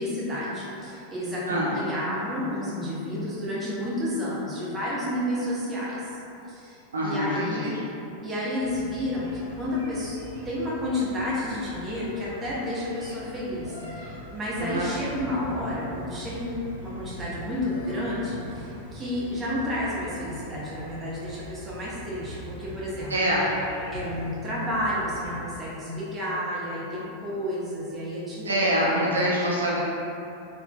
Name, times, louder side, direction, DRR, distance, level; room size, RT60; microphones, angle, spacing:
voice 1, 0.0-6.1 6.5-7.7 8.2-10.2 10.4-23.1 23.9-29.4, left 1 dB, 20° right, -8 dB, 0.9 m, -31 dB
voice 2, 6.9-7.8 14.6-14.9 23.1-23.5 28.4-29.8, right 1 dB, 75° right, -5 dB, 0.4 m, -25 dB
sound 1, 8.6-25.4, right 1 dB, 85° left, 0.7 m, -42 dB
3.5 x 3.2 x 2.3 m, 2.9 s
figure-of-eight pair, 90°, 0 cm